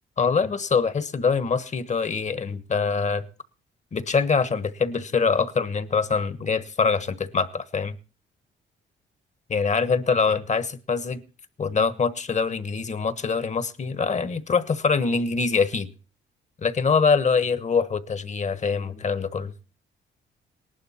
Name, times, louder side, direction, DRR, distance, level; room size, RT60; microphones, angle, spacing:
voice 1, 0.2-3.2 3.9-8.0 9.5-11.2 11.6-15.9 16.6-19.5, left 5 dB, 35° left, 14 dB, 1.2 m, -24 dB
18.5 x 11.5 x 4.3 m, 0.37 s
cardioid pair, 90°, 20 cm